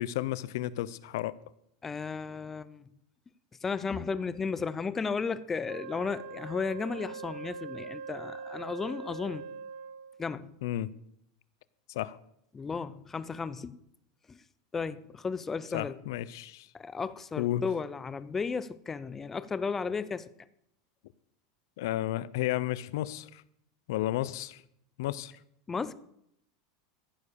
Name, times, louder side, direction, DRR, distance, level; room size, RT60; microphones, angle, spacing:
voice 1, 0.0-1.4 10.6-10.9 11.9-12.2 15.7-16.7 17.4-17.6 21.8-23.4 23.9-24.6 25.0-25.3, left 14 dB, 70° left, 0.6 m, -32 dB
voice 2, 1.8-2.9 3.6-9.4 10.2-10.5 12.5-13.8 14.3-14.4 14.7-16.0 16.7-20.3 25.7-25.9, left 5 dB, 15° left, 0.6 m, -34 dB
Wind instrument woodwind instrument, 5.7-10.3, right 5 dB, 85° right, 1.4 m, -42 dB
14.5 x 7.4 x 6.7 m
supercardioid pair, 150°, 2 cm